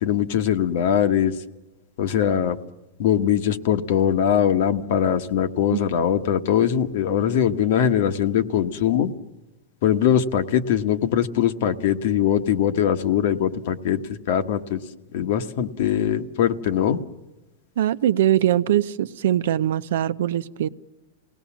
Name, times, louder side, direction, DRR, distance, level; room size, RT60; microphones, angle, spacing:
voice 1, 0.0-1.4 2.0-2.6 3.0-9.1 9.8-14.8 15.1-17.0, left 9 dB, 65° left, 9 dB, 1.3 m, -21 dB
voice 2, 17.8-20.7, right 11 dB, 75° right, 13 dB, 0.8 m, -21 dB
28.0 x 19.0 x 7.3 m, 1.1 s
supercardioid pair, 145°, 0 cm